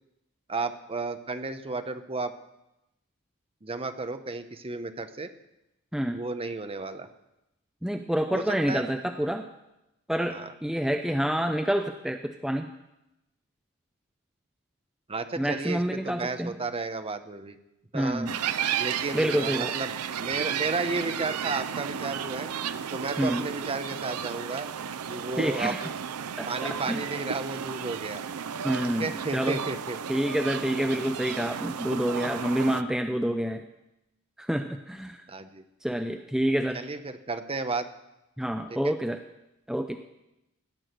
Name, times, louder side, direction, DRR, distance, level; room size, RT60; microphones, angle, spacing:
voice 1, 0.5-2.3 3.6-5.3 6.1-7.1 8.3-8.8 10.3-10.5 15.1-17.6 17.9-18.3 18.8-22.5 22.9-24.7 25.1-25.9 26.5-28.2 28.8-30.0 35.3-35.6 36.7-37.9 38.8-38.9, right 3 dB, 25° right, 9 dB, 0.9 m, -33 dB
voice 2, 7.8-9.5 10.1-12.7 15.4-16.6 17.9-18.4 19.1-19.7 23.2-23.4 25.4-25.8 26.4-27.0 28.6-29.6 30.1-33.6 34.4-35.2 35.8-36.8 38.4-39.2 39.7-40.0, equal, ahead, 6 dB, 0.6 m, -28 dB
sound 1, 18.3-32.8, right 8 dB, 85° right, 0.5 m, -33 dB
sound 2, 19.9-23.6, right 3 dB, 55° right, 5.5 m, -46 dB
17.5 x 6.3 x 9.1 m, 0.91 s
head